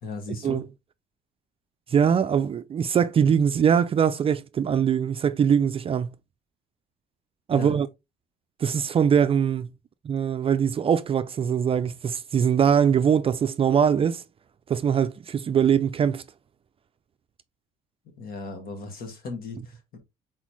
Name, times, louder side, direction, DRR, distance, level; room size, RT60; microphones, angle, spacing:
voice 1, 0.0-0.7 7.5-7.8 18.2-20.0, left 3 dB, 60° left, 1.8 m, -36 dB
voice 2, 1.9-6.1 7.5-7.9 8.6-9.7 10.0-14.2 14.7-16.2, right 7 dB, 35° right, 0.4 m, -22 dB
4.1 x 4.1 x 3.0 m
cardioid pair, 110°, 17 cm